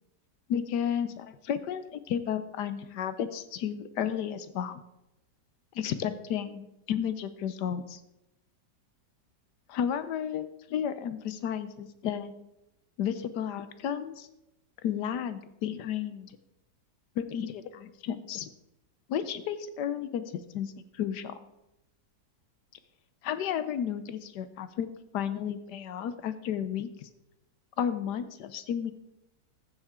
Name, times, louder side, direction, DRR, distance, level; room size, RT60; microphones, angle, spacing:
voice 1, 0.5-4.8 5.7-8.0 9.7-12.3 13.0-14.3 14.8-16.3 17.2-18.5 19.1-21.3 23.2-24.9 25.1-27.1 27.8-28.9, left 9 dB, 80° left, 12 dB, 1.3 m, -32 dB
14.5 x 7.4 x 3.7 m, 0.88 s
omnidirectional pair, 1.8 m